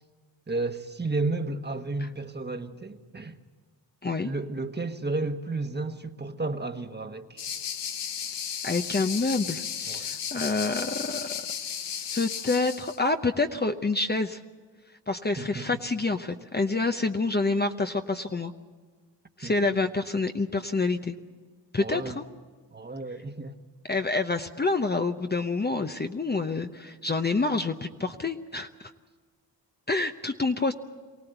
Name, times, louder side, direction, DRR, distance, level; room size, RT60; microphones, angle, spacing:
voice 1, 0.5-3.4 4.2-7.5 9.9-10.1 15.4-15.7 19.4-19.5 21.8-22.2 22.7-23.6, right 3 dB, 25° right, 1.3 m, -32 dB
sound 1, 7.4-13.0, left 8 dB, 75° left, 1.1 m, -34 dB
voice 2, 8.6-11.5 12.1-14.4 15.1-18.5 19.4-21.2 21.7-22.2 23.9-28.9 29.9-30.7, left 3 dB, 25° left, 0.8 m, -27 dB
23.5 x 17.5 x 8.0 m
cardioid pair, 80°, 43 cm